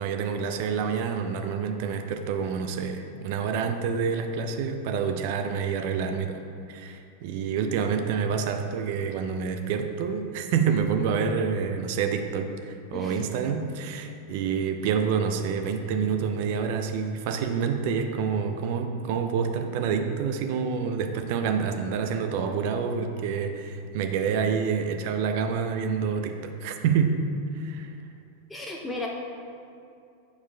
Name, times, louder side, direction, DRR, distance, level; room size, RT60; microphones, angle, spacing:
voice 1, 0.0-6.4 6.7-27.2 27.5-27.9, right 6 dB, 50° right, 6 dB, 0.5 m, -27 dB
voice 2, 12.9-13.3 28.5-29.1, left 2 dB, 10° left, -1 dB, 0.5 m, -34 dB
9.0 x 4.7 x 2.2 m, 2.5 s
figure-of-eight pair, 90°, 0 cm